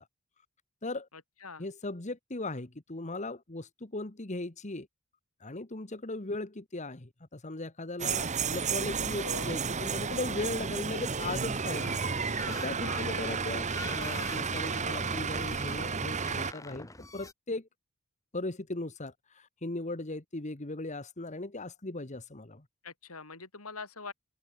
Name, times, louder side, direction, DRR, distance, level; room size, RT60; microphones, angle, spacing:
voice 1, 1.6-4.9 5.4-17.7 18.3-22.6, left 2 dB, 35° left, 1.5 m, -38 dB
sound 1, 8.0-16.5, right 5 dB, 35° right, 1.2 m, -32 dB
voice 2, 9.2-9.5 12.8-13.1 22.8-24.1, left 4 dB, 90° left, 4.6 m, -43 dB
sound 2, 11.6-17.3, left 2 dB, 15° left, 2.9 m, -46 dB
open air
head